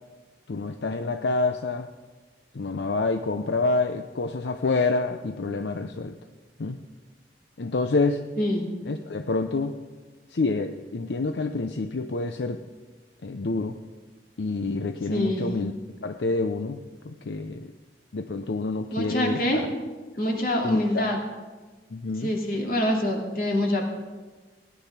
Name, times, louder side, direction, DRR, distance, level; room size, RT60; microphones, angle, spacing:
voice 1, 0.5-1.9 2.5-6.1 6.6-6.8 7.6-8.2 8.8-9.7 10.3-12.6 13.2-13.8 14.4-15.7 16.0-17.7 18.1-19.4 20.6-21.1 21.9-22.3, left 3 dB, 80° left, 7 dB, 0.6 m, -27 dB
voice 2, 15.1-15.5 18.9-19.6 20.2-21.2 22.2-23.8, left 1 dB, 55° left, 1 dB, 2.6 m, -25 dB
16.5 x 10.5 x 5.8 m, 1.3 s
head